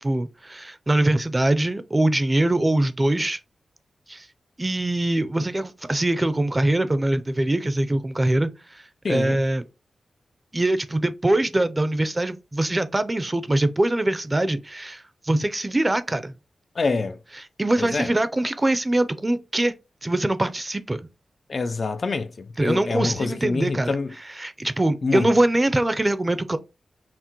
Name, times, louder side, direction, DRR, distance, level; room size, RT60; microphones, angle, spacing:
voice 1, 0.0-3.4 4.1-4.3 4.6-9.6 10.5-16.4 17.4-19.7 20.0-21.0 22.6-26.6, right 1 dB, 25° right, 0.5 m, -23 dB
voice 2, 9.0-9.4 16.8-17.2 17.8-18.1 21.5-24.1 25.0-25.3, left 4 dB, 55° left, 0.4 m, -26 dB
5.8 x 2.1 x 2.9 m
cardioid pair, 60°, 0 cm